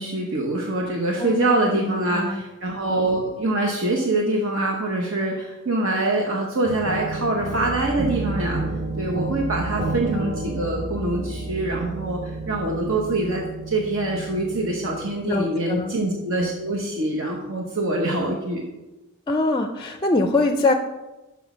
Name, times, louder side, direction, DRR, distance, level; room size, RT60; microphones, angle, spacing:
voice 1, 0.0-8.6 9.0-18.6, right 2 dB, 65° right, 0 dB, 1.0 m, -24 dB
voice 2, 1.2-2.4 15.2-15.9 19.3-20.7, left 2 dB, 20° left, 6 dB, 0.4 m, -23 dB
sound 1, 6.6-15.1, right 3 dB, 45° right, 1.3 m, -31 dB
6.2 x 5.8 x 6.0 m, 1.1 s
head